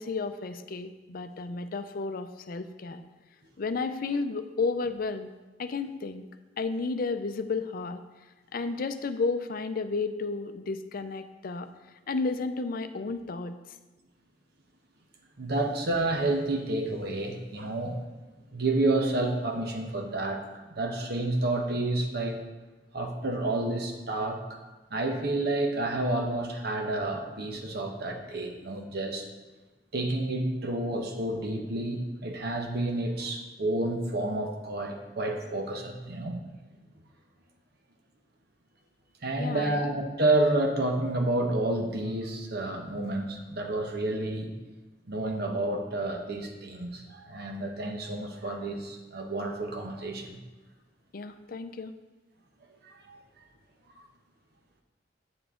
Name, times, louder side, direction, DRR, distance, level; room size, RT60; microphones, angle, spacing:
voice 1, 0.0-3.0 3.6-5.3 5.6-6.2 6.6-8.0 8.5-11.7 12.1-13.6 39.4-39.8 51.1-51.9, left 4 dB, 50° left, 9 dB, 0.5 m, -32 dB
voice 2, 15.4-18.0 18.5-20.5 20.8-22.4 22.9-24.6 24.9-29.3 29.9-36.4 39.2-44.5 45.1-50.4 52.8-53.2 54.0-54.1, right 2 dB, 60° right, 3 dB, 1.0 m, -30 dB
8.7 x 7.1 x 3.7 m, 1.2 s
head